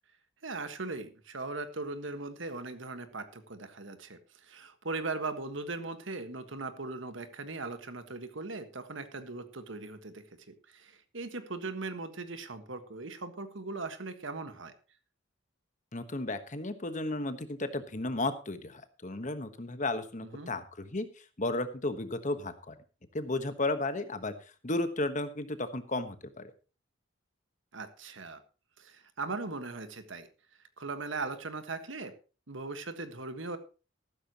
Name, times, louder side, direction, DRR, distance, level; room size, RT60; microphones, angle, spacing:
voice 1, 0.4-14.7 20.3-20.5 27.7-28.4 28.8-30.3 30.8-32.1 32.5-33.6, right 3 dB, 70° right, 10 dB, 1.5 m, -39 dB
voice 2, 15.9-21.1 21.4-22.8 23.1-24.3 24.6-26.5, left 2 dB, 35° left, 10 dB, 1.2 m, -34 dB
14.5 x 13.0 x 3.0 m, 0.33 s
head